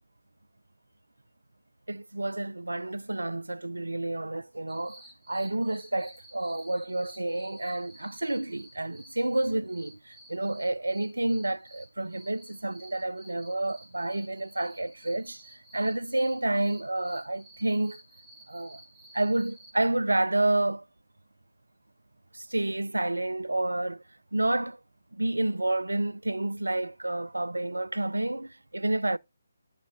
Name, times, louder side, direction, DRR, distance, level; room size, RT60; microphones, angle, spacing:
voice 1, 1.9-5.0 5.3-15.4 15.7-18.0 18.5-18.8 19.1-20.9 22.3-24.0 24.3-24.8 25.1-29.2, right 2 dB, 80° right, 0.3 m, -29 dB
sound 1, 4.7-19.7, right 1 dB, 5° right, 1.4 m, -54 dB
12.0 x 5.5 x 2.6 m
figure-of-eight pair, 145°, 0 cm